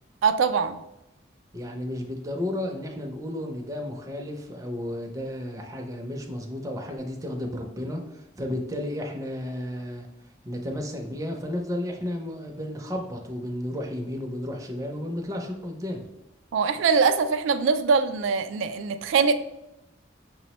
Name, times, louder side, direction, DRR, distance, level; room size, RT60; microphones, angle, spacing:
voice 1, 0.2-0.8 16.5-19.3, right 5 dB, 90° right, 8 dB, 0.3 m, -22 dB
voice 2, 1.5-10.1 10.4-16.0, left 1 dB, 20° right, 2 dB, 0.4 m, -33 dB
5.9 x 2.0 x 2.9 m, 0.90 s
head